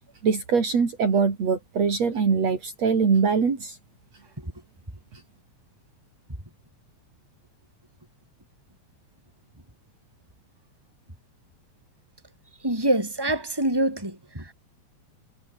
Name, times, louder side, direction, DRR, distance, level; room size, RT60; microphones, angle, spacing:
voice 1, 0.2-3.8, right 5 dB, 60° right, 4.9 m, -22 dB
voice 2, 12.6-14.5, right 1 dB, 5° right, 6.9 m, -25 dB
omnidirectional pair, 3.4 m